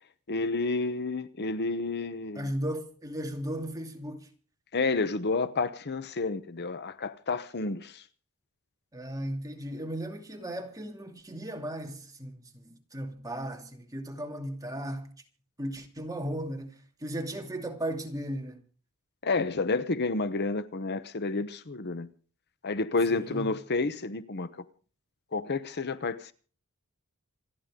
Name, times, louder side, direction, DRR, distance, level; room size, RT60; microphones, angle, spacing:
voice 1, 0.3-2.5 4.7-8.0 19.2-22.1 22.6-24.5 25.3-26.3, left 3 dB, 50° left, 0.9 m, -30 dB
voice 2, 2.3-4.3 8.9-15.1 15.6-18.6 23.3-23.5, right 1 dB, 15° right, 2.6 m, -36 dB
27.5 x 11.0 x 3.7 m
head